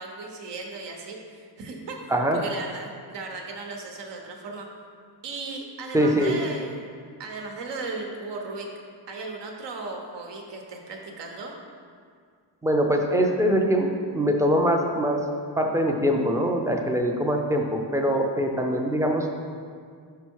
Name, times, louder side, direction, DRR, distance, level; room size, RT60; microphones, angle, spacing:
voice 1, 0.0-4.7 5.2-8.7 9.1-11.5, right 3 dB, 80° right, 1 dB, 1.0 m, -36 dB
voice 2, 5.9-6.3 12.6-15.2 15.6-19.4, equal, 10° right, 1 dB, 0.4 m, -23 dB
5.7 x 5.4 x 4.6 m, 2.1 s
wide cardioid pair, 160°, 42 cm